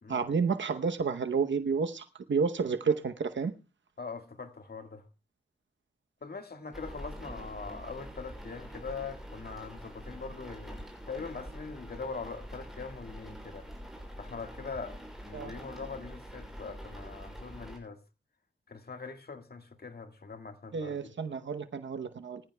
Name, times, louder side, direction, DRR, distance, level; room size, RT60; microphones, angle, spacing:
voice 1, 0.1-3.5 15.3-15.5 20.7-22.4, right 5 dB, 75° right, 0.9 m, -30 dB
voice 2, 4.0-5.0 6.2-13.7 14.2-15.0 15.3-18.0 18.7-21.1, left 4 dB, 55° left, 1.7 m, -42 dB
sound 1, 6.7-17.8, equal, ahead, 6.4 m, -45 dB
23.5 x 14.5 x 2.2 m
wide cardioid pair, 75°, 19 cm